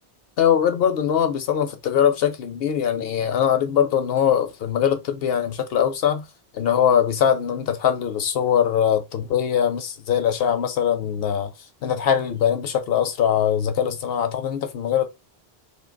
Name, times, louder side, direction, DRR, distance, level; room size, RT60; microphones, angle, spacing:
voice 1, 0.4-6.3 6.5-11.5 11.8-15.1, left 9 dB, 70° left, 0.8 m, -22 dB
2.7 x 2.3 x 3.7 m
omnidirectional pair, 1.1 m